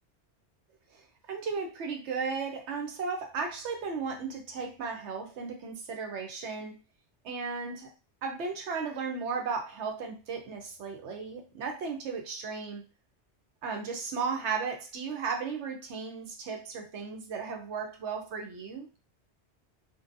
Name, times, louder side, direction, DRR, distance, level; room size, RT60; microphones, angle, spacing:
voice 1, 1.3-6.8 7.2-7.9 8.2-12.8 13.6-18.9, right 5 dB, 85° right, 1.0 m, -35 dB
2.7 x 2.2 x 2.5 m
omnidirectional pair, 1.1 m